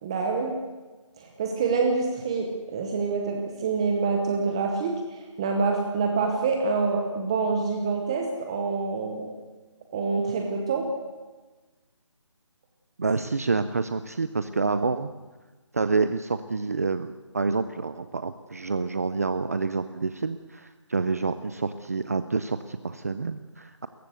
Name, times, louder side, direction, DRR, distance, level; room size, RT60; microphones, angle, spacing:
voice 1, 0.0-0.6 1.2-9.3 9.9-10.9, right 4 dB, 10° right, 3 dB, 1.0 m, -26 dB
voice 2, 13.0-15.1 15.7-23.9, right 4 dB, 30° right, 11 dB, 0.6 m, -28 dB
28.5 x 14.5 x 8.0 m, 1.3 s
figure-of-eight pair, 170°, 16 cm